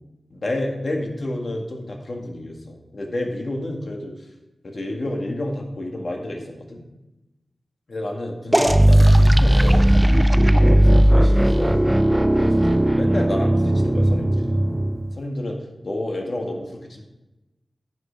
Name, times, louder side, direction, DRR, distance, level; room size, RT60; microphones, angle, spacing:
voice 1, 0.3-4.1 4.6-6.8 7.9-9.9 10.7-11.7 12.4-14.7 15.2-17.0, left 1 dB, 50° left, 1 dB, 1.9 m, -30 dB
sound 1, 8.5-15.1, right 1 dB, 10° right, 0.3 m, -16 dB
10.5 x 9.3 x 3.5 m, 1.0 s
wide cardioid pair, 80°, 0 cm